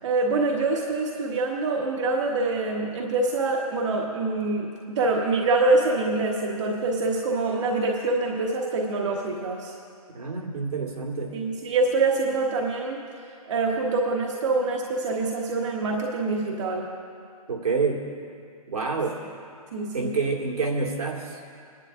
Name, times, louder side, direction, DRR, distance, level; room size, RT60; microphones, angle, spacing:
voice 1, 0.0-9.7 11.3-13.0 13.5-16.9 19.7-20.2, right 3 dB, 50° right, -1 dB, 1.2 m, -25 dB
voice 2, 10.1-11.3 17.5-18.0 18.7-19.2 19.9-21.3, right 4 dB, 80° right, -1 dB, 2.1 m, -27 dB
26.0 x 10.5 x 2.5 m, 2.4 s
hypercardioid pair, 155°, 19 cm